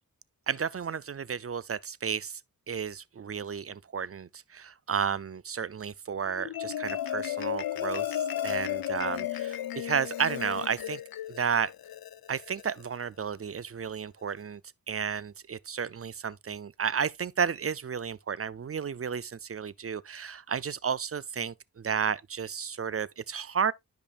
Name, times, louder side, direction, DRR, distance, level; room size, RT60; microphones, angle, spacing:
voice 1, 0.5-2.4 2.7-11.0 11.3-11.7 12.3-14.6 14.9-23.7, right 7 dB, 40° right, 0.5 m, -32 dB
Marimba xylophone, 6.3-12.9, left 11 dB, 85° left, 0.5 m, -34 dB
12.0 x 5.2 x 2.4 m
wide cardioid pair, 80°, 35 cm